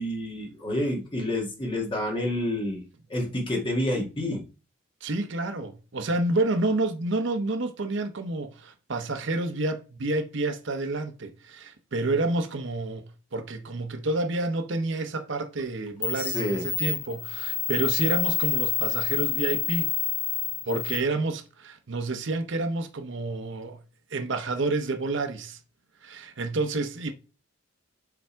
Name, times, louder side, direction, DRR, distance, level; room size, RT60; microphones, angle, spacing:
voice 1, 0.0-2.8 3.1-4.4 16.2-16.6, left 1 dB, 25° left, 1.6 m, -28 dB
voice 2, 5.0-19.9 20.7-23.8 24.1-25.6 26.0-27.1, right 2 dB, 60° right, 0.7 m, -29 dB
sound 1, 15.6-15.7 16.0-21.0, left 11 dB, 40° left, 1.1 m, -28 dB
7.0 x 3.5 x 4.5 m
head